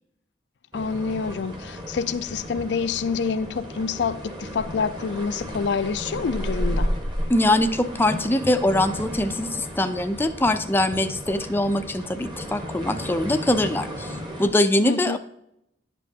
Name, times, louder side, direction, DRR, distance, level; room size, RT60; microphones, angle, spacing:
voice 1, 0.7-6.9 14.8-15.2, left 5 dB, 70° left, 0.4 m, -27 dB
sound 1, 0.7-14.5, equal, 25° right, 1.3 m, -33 dB
voice 2, 7.3-14.1 14.4-15.2, left 1 dB, 10° left, 0.4 m, -22 dB
11.0 x 5.2 x 2.8 m
head